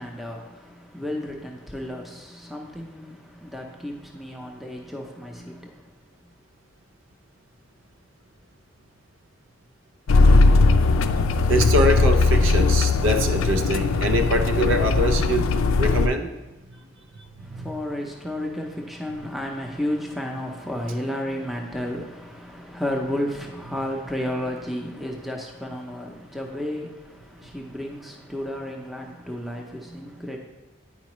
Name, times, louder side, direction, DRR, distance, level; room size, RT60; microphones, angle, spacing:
voice 1, 0.0-5.9 17.4-30.4, left 1 dB, ahead, 0.6 m, -32 dB
sound 1, 10.1-16.1, left 3 dB, 85° left, 0.4 m, -19 dB
voice 2, 11.5-16.3 17.4-17.7, right 1 dB, 75° right, 0.7 m, -24 dB
9.5 x 4.8 x 3.0 m
head